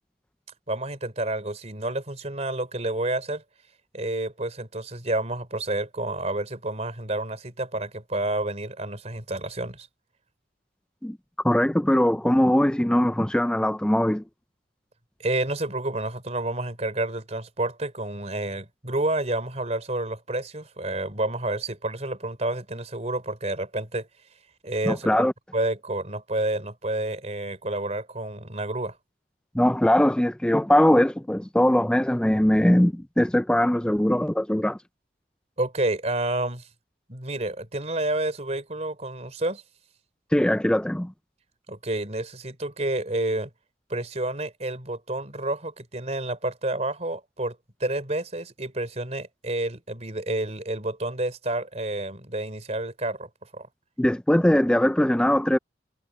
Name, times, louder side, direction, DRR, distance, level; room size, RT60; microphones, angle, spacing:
voice 1, 0.7-3.4 3.9-9.9 15.2-24.1 24.6-25.3 25.5-29.0 35.6-36.7 37.1-39.6 41.7-43.5 43.9-53.7, right 2 dB, 35° right, 4.1 m, -29 dB
voice 2, 11.4-14.2 24.9-25.3 29.5-34.8 40.3-41.1 54.0-55.6, left 1 dB, 5° left, 0.4 m, -21 dB
head